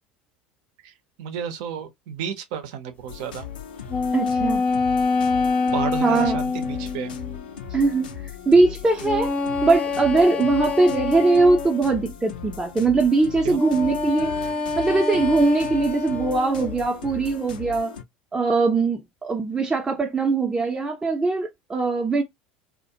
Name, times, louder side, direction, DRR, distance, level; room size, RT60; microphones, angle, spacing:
voice 1, 1.2-3.5 5.7-7.1 13.4-13.6, right 8 dB, 60° right, 0.6 m, -31 dB
sound 1, 3.1-18.0, left 8 dB, 75° left, 0.5 m, -38 dB
sound 2, 3.9-7.4 9.0-11.9 13.5-16.8, left 4 dB, 30° left, 0.6 m, -26 dB
voice 2, 4.1-4.6 6.0-6.4 7.7-8.1 8.5-9.3 9.6-14.3 14.8-17.9 18.3-22.2, right 3 dB, 15° right, 0.6 m, -21 dB
2.3 x 2.1 x 2.7 m
figure-of-eight pair, 70°, 5 cm